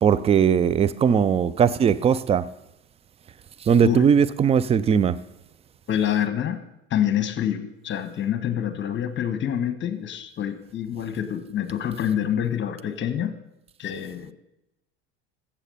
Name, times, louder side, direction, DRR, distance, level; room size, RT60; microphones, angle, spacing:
voice 1, 0.0-2.5 3.7-5.2, right 7 dB, 20° right, 17 dB, 0.5 m, -19 dB
voice 2, 5.9-6.6 6.9-13.4 13.8-14.3, left 9 dB, 35° left, 11 dB, 1.3 m, -26 dB
14.5 x 7.5 x 5.6 m, 0.89 s
figure-of-eight pair, 75°, 34 cm